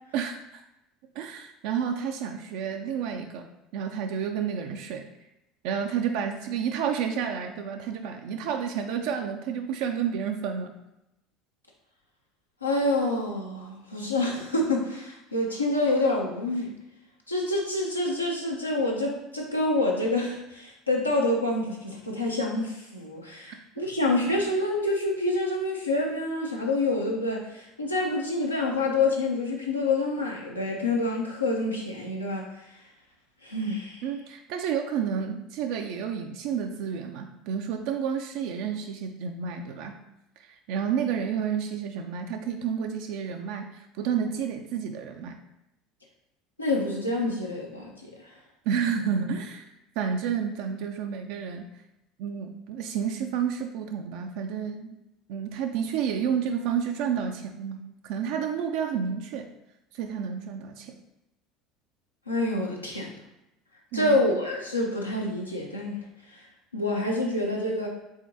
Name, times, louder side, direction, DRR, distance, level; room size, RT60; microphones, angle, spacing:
voice 1, 0.1-0.6 1.2-3.5 3.7-5.1 5.6-10.8 23.5-23.8 34.0-39.9 40.4-45.4 48.7-49.7 50.0-51.7 52.2-55.0 55.3-59.5 59.9-61.0 63.9-64.3, right 7 dB, 60° right, 4 dB, 0.4 m, -30 dB
voice 2, 12.6-16.7 17.3-32.4 33.4-34.0 46.6-48.1 62.3-63.1 63.9-65.9 66.3-66.4 66.7-67.9, left 2 dB, 90° left, -2 dB, 0.7 m, -27 dB
4.8 x 3.6 x 2.7 m, 0.88 s
figure-of-eight pair, 65°, 0 cm